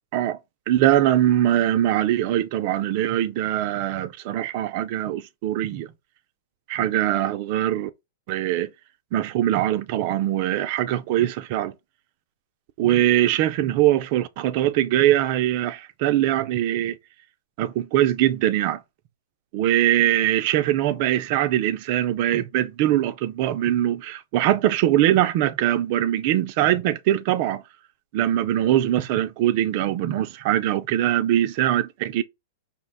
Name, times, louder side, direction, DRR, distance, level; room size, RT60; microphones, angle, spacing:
voice 1, 0.7-5.9 6.7-7.9 8.3-8.7 9.1-11.7 12.8-17.0 17.6-18.8 19.5-27.6 28.1-32.2, right 12 dB, 45° right, 0.4 m, -22 dB
5.5 x 2.1 x 4.0 m
hypercardioid pair, 140°, 0 cm